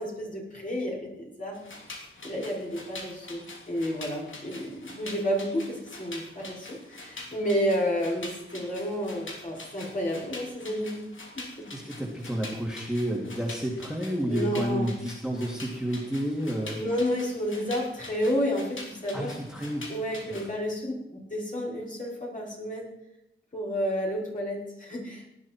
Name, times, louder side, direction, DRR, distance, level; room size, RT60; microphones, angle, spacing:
voice 1, 0.0-1.6 2.2-11.0 11.3-11.7 14.3-14.9 16.7-19.3 19.9-22.9 23.5-25.4, equal, 40° left, -4 dB, 5.9 m, -31 dB
sound 1, 1.5-20.5, left 2 dB, 65° left, 3.1 m, -45 dB
voice 2, 11.7-16.8 19.1-19.9 20.3-20.4, right 1 dB, 5° right, -3 dB, 2.9 m, -30 dB
18.0 x 12.0 x 4.6 m, 0.84 s
wide cardioid pair, 80°, 21 cm